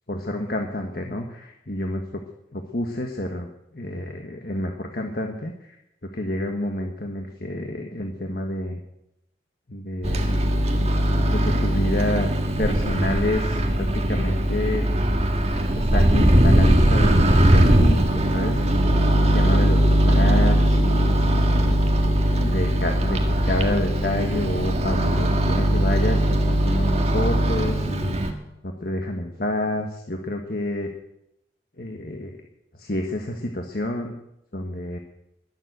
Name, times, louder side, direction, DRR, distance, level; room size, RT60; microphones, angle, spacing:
voice 1, 0.1-2.2 2.5-5.8 6.1-8.8 9.7-10.3 11.3-12.3 12.6-14.9 15.7-18.6 19.2-22.1 22.4-28.2 28.6-30.9 31.8-32.4 32.7-34.1 34.5-35.0, left 1 dB, 50° left, 3 dB, 1.4 m, -29 dB
Microwave oven, 10.0-28.3, right 1 dB, 35° right, 1.7 m, -20 dB
21.0 x 7.5 x 8.0 m, 0.83 s
head